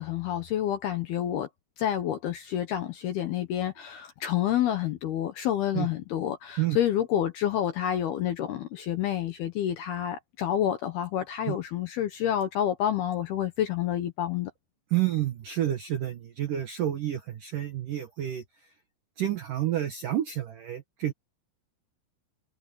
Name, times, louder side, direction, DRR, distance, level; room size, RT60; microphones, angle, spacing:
voice 1, 0.0-1.5 1.8-14.5, left 11 dB, 70° left, 2.5 m, -28 dB
voice 2, 14.9-18.4 19.2-21.1, right 12 dB, 75° right, 2.0 m, -29 dB
omnidirectional pair, 5.9 m